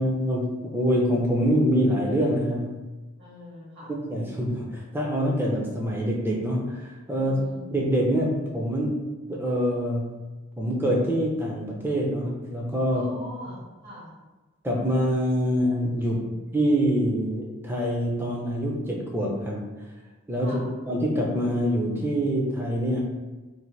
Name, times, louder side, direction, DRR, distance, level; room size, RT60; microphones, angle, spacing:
voice 1, 0.0-2.8 3.9-7.4 7.7-10.2 10.6-13.1 14.6-16.2 16.5-19.7 20.3-23.0, equal, 10° right, -2 dB, 0.4 m, -25 dB
voice 2, 3.2-3.9 7.2-7.7 12.9-14.1 15.9-16.4 20.4-20.7, equal, 50° right, -7 dB, 1.0 m, -43 dB
2.6 x 2.5 x 3.1 m, 1.2 s
head